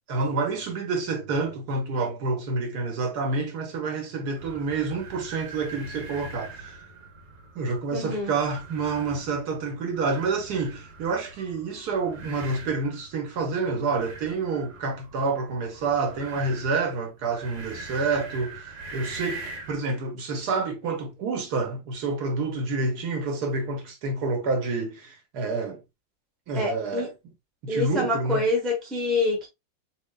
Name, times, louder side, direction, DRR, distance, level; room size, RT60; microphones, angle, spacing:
voice 1, 0.1-6.8 7.5-25.8 26.5-27.1 27.6-28.4, right 3 dB, 65° right, 1.3 m, -28 dB
sound 1, 4.4-19.9, right 3 dB, 80° right, 1.6 m, -43 dB
voice 2, 7.9-8.3 26.5-27.1 27.7-29.5, left 2 dB, ahead, 0.5 m, -26 dB
3.8 x 3.3 x 2.2 m
omnidirectional pair, 2.0 m